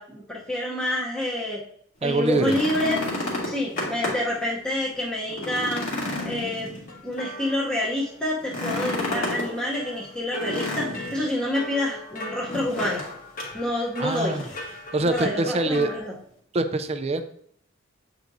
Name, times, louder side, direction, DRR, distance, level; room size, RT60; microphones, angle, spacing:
voice 1, 0.0-1.6 2.0-3.0 3.4-5.9 6.2-6.7 7.0-13.0 13.5-14.4 15.0-16.1, left 1 dB, 5° left, -7 dB, 0.8 m, -28 dB
voice 2, 2.0-2.6 14.0-14.4 14.9-15.9 16.5-17.2, right 2 dB, 30° right, 9 dB, 0.4 m, -24 dB
sound 1, 2.1-4.4 4.8-4.9 5.3-7.2 8.4-9.5 10.4-11.3 12.5-13.1 13.4-13.5 14.1-14.7 15.8-15.9, left 1 dB, 75° left, 2.1 m, -31 dB
sound 2, 3.0-3.2 3.8-4.5 4.9-5.0 6.9-8.5 9.1-16.0, left 1 dB, 45° left, 1.1 m, -39 dB
8.1 x 4.7 x 2.6 m, 0.64 s
head